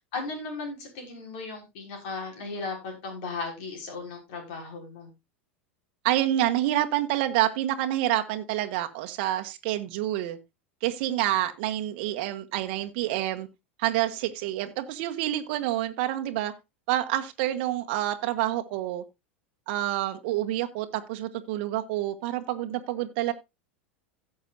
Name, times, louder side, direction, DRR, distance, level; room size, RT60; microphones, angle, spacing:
voice 1, 0.1-5.1, left 3 dB, 60° left, 5.6 m, -36 dB
voice 2, 6.0-10.4 10.8-13.5 13.8-16.5 16.9-19.0 19.7-23.3, right 14 dB, 60° right, 1.2 m, -28 dB
16.5 x 7.1 x 2.6 m
hypercardioid pair, 85°, 6 cm